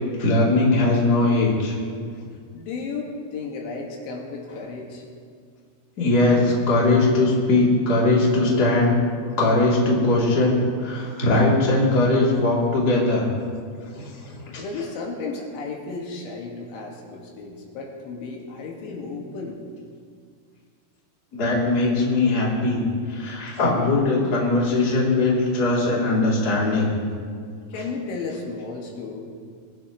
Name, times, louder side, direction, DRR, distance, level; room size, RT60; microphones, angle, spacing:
voice 1, 0.2-1.8 6.0-9.0 9.4-13.2 14.0-14.6 21.3-22.8 23.1-26.9, left 2 dB, 25° left, -5 dB, 2.9 m, -20 dB
voice 2, 2.5-5.0 14.6-19.6 27.7-29.2, left 4 dB, 85° left, -1 dB, 4.3 m, -33 dB
23.0 x 15.5 x 3.1 m, 2.1 s
omnidirectional pair, 5.4 m